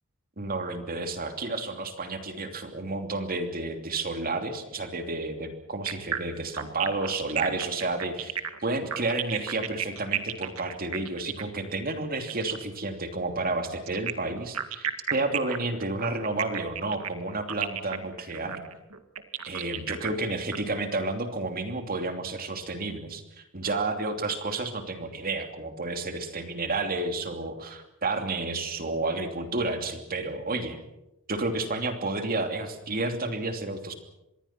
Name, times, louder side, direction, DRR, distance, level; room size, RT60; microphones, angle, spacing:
voice 1, 0.4-8.4 8.6-18.6 19.5-30.8 31.3-33.9, right 2 dB, 45° right, 6 dB, 2.9 m, -31 dB
sound 1, 5.9-12.6 13.9-20.6, right 9 dB, 75° right, 2.1 m, -33 dB
26.0 x 21.5 x 6.0 m, 0.90 s
head